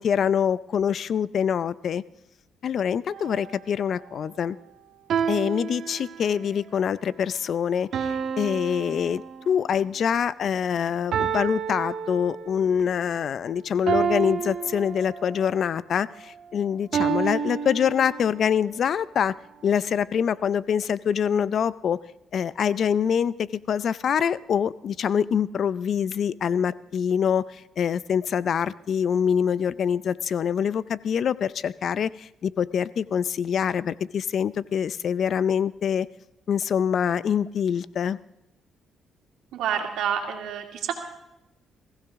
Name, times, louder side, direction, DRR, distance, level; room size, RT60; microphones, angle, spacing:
voice 1, 0.0-2.0 2.6-4.6 5.3-8.1 8.4-19.3 19.6-22.0 22.3-36.1 36.5-38.2, left 8 dB, 60° left, 18 dB, 0.5 m, -25 dB
sound 1, 3.1-3.6 5.1-6.6 7.9-9.7 11.1-12.7 13.9-15.5 16.9-18.5, right 7 dB, 65° right, 1.5 m, -29 dB
voice 2, 39.5-40.9, right 8 dB, 85° right, 3 dB, 2.4 m, -28 dB
20.5 x 15.5 x 3.6 m, 0.89 s
cardioid pair, 90°, 0 cm